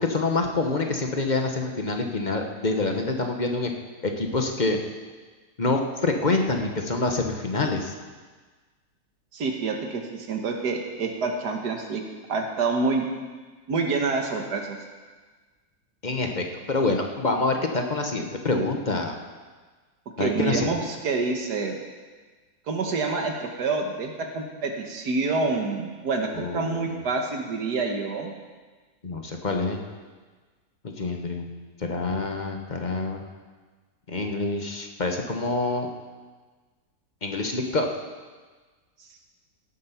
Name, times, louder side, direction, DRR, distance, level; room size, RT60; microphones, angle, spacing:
voice 1, 0.0-3.7 4.0-4.8 5.6-7.9 16.0-19.2 20.2-20.7 26.3-27.0 29.0-29.8 30.8-31.5 31.8-33.2 34.1-35.9 37.2-37.9, left 3 dB, 30° left, 3 dB, 1.1 m, -26 dB
voice 2, 9.3-12.0 12.3-13.0 13.7-14.8 20.2-21.8 22.7-28.3, right 4 dB, 90° right, 2 dB, 1.9 m, -27 dB
17.0 x 8.1 x 5.8 m, 1.4 s
omnidirectional pair, 1.7 m